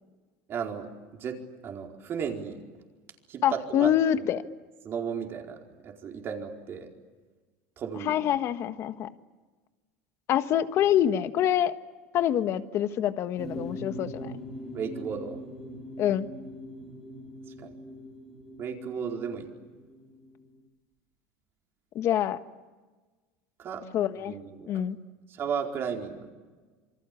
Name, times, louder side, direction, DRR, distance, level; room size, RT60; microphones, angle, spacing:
voice 1, 0.5-0.9 1.1-2.6 3.3-3.9 4.8-6.9 7.8-8.1 14.7-15.4 17.6-17.7 18.6-19.5 23.6-23.8 24.3-24.7 25.3-26.3, right 7 dB, 35° right, 2 dB, 4.6 m, -34 dB
voice 2, 3.4-4.4 8.0-9.1 10.3-11.7 12.1-14.3 16.0-16.3 21.9-22.4 23.9-24.3 24.7-25.0, left 11 dB, 45° left, 10 dB, 1.4 m, -26 dB
sound 1, 13.4-20.6, equal, ahead, 5.2 m, -42 dB
27.5 x 25.0 x 8.6 m, 1.3 s
supercardioid pair, 140°, 7 cm